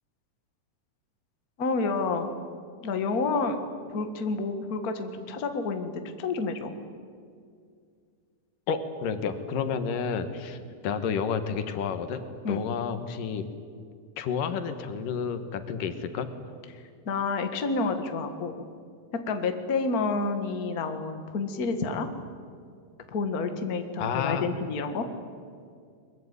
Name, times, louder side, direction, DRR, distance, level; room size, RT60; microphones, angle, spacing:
voice 1, 1.6-2.3 2.8-3.6 3.9-6.7 12.4-12.6 16.7-18.6 19.3-22.1 23.1-25.1, left 4 dB, 35° left, 7 dB, 1.6 m, -29 dB
voice 2, 8.7-10.6 10.8-12.2 12.5-13.5 14.2-16.3 24.0-24.5, left 6 dB, 90° left, 9 dB, 3.1 m, -30 dB
22.0 x 22.0 x 9.5 m, 2.2 s
omnidirectional pair, 3.7 m